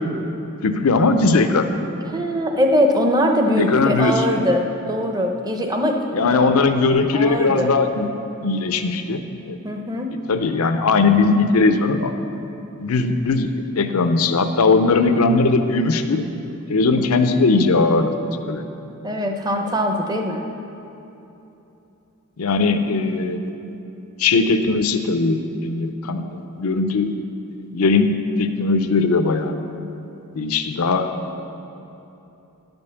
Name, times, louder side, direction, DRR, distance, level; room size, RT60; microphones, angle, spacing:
voice 1, 0.6-1.7 3.6-4.3 6.1-8.1 8.4-9.2 9.5-9.6 10.3-12.1 12.8-13.5 13.8-16.2 16.7-18.1 18.5-18.6 22.4-23.5 24.2-26.2 26.6-27.1 27.7-29.5 30.4-31.1, left 3 dB, 75° left, 8 dB, 0.6 m, -19 dB
voice 2, 2.1-6.5 7.1-7.7 9.6-10.1 17.0-17.2 19.0-20.5, equal, 15° right, 3 dB, 0.7 m, -22 dB
10.5 x 5.3 x 6.9 m, 2.9 s
head